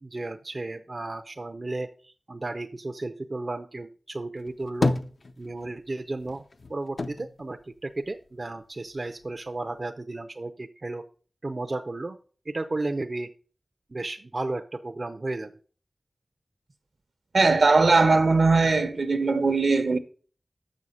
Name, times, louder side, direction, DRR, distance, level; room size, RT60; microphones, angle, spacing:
voice 1, 0.0-5.0 5.4-6.4 6.7-11.0 11.4-12.2 12.5-13.3 13.9-15.5, right 2 dB, 50° right, 0.5 m, -33 dB
sound 1, 4.4-5.9 6.2-8.5 8.9-9.8, left 3 dB, 70° left, 0.6 m, -31 dB
voice 2, 17.3-20.0, right 3 dB, 75° right, 0.9 m, -20 dB
7.0 x 6.3 x 5.4 m
wide cardioid pair, 75°, 0 cm